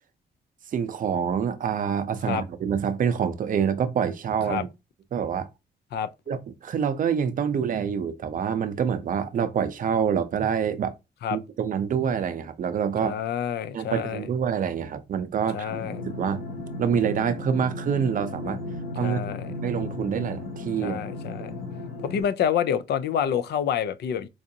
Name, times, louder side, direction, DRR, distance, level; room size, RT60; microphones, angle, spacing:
voice 1, 0.7-4.7 5.1-5.5 6.3-10.9 11.3-13.1 13.7-15.7 16.0-16.4 16.8-18.6 18.9-19.2 19.6-21.0, right 7 dB, 50° right, 0.5 m, -26 dB
voice 2, 13.0-14.3 15.5-16.0 19.0-19.5 20.8-21.6 22.0-24.3, left 8 dB, 70° left, 0.4 m, -28 dB
sound 1, 15.7-22.2, left 2 dB, 90° left, 2.4 m, -35 dB
4.7 x 2.5 x 2.6 m
cardioid pair, 125°, 18 cm